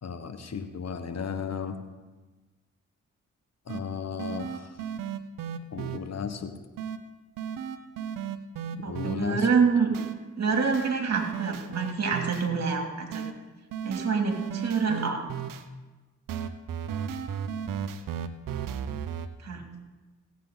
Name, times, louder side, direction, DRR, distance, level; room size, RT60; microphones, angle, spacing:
voice 1, 0.0-1.8 3.7-4.8 5.7-6.5 8.8-9.5, left 6 dB, 50° left, 9 dB, 1.2 m, -35 dB
sound 1, 3.7-3.8 4.2-6.0 6.8-7.0 7.4-9.2 9.9-10.1 10.5-12.5 13.1-13.3 13.7-15.6 16.3-19.3, right 8 dB, 75° right, 0.8 m, -34 dB
voice 2, 8.7-10.0 10.4-13.3 13.8-15.2 19.4-19.6, right 5 dB, 50° right, 2 dB, 2.6 m, -27 dB
17.5 x 8.4 x 3.9 m, 1.2 s
supercardioid pair, 45°, 33 cm